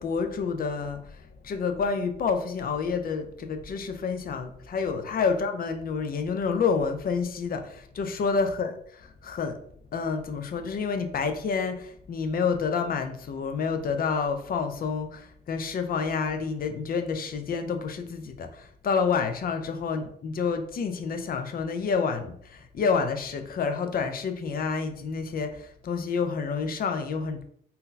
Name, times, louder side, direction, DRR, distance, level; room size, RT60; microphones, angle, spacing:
voice 1, 0.0-8.7 9.2-9.6 9.9-27.4, left 5 dB, 45° left, 7 dB, 0.5 m, -29 dB
2.7 x 2.1 x 3.8 m, 0.63 s
cardioid pair, 90°, 20 cm